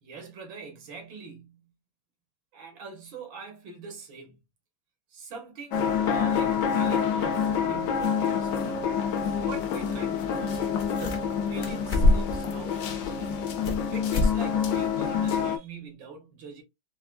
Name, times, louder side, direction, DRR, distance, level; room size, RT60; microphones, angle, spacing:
voice 1, 0.0-1.7 2.5-4.4 5.1-8.8 9.4-13.4 13.9-16.6, right 5 dB, 90° right, 2.0 m, -43 dB
sound 1, 5.7-15.6, left 7 dB, 80° left, 1.3 m, -27 dB
sound 2, 10.2-10.3 10.5-11.3 11.6-12.4 12.9-13.8 14.1-14.4 14.7-14.8 15.3-15.4, left 2 dB, 45° left, 0.9 m, -25 dB
4.6 x 2.3 x 2.2 m
omnidirectional pair, 2.0 m